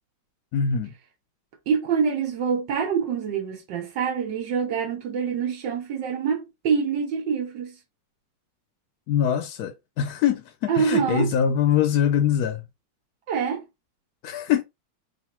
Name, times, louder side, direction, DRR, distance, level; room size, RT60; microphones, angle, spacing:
voice 1, 0.5-0.9 9.1-12.6 14.2-14.6, left 8 dB, 70° left, 1.0 m, -23 dB
voice 2, 1.7-7.7 10.7-11.3 13.3-13.6, right 6 dB, 80° right, 1.6 m, -25 dB
3.8 x 2.5 x 4.2 m
omnidirectional pair, 1.9 m